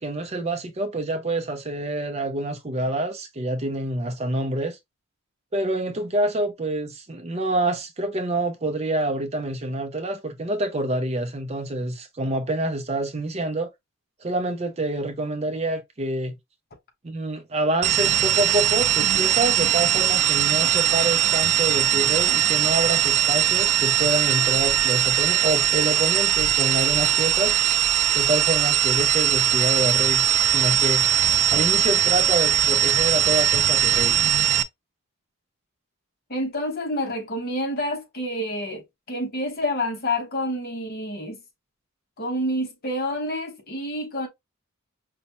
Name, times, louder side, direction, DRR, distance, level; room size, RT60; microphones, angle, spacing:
voice 1, 0.0-4.8 5.5-13.7 14.2-16.4 17.0-27.5 28.1-30.3 30.5-31.1 31.5-34.2, right 2 dB, 30° right, 0.5 m, -27 dB
sound 1, 17.8-34.6, right 10 dB, 85° right, 0.4 m, -20 dB
voice 2, 36.3-41.4 42.2-44.3, left 1 dB, 45° left, 1.0 m, -28 dB
5.2 x 2.1 x 2.9 m
head